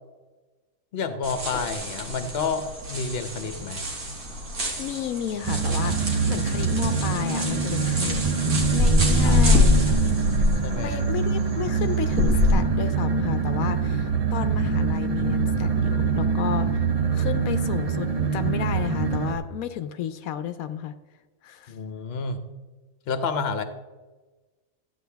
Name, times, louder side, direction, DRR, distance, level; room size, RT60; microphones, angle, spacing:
voice 1, 0.9-3.8 9.1-9.6 9.9-10.3 10.6-11.1 21.7-22.4 23.1-23.6, left 5 dB, 50° left, 9 dB, 1.0 m, -30 dB
sound 1, 1.2-12.5, left 2 dB, 90° right, 2.1 m, -26 dB
voice 2, 4.8-8.4 8.7-10.2 10.8-16.9 17.1-21.0 21.4-21.7, left 10 dB, 85° left, 10 dB, 1.1 m, -32 dB
sound 2, 5.4-19.4, right 5 dB, 30° right, 0.8 m, -24 dB
13.0 x 8.6 x 3.4 m, 1.3 s
omnidirectional pair, 1.5 m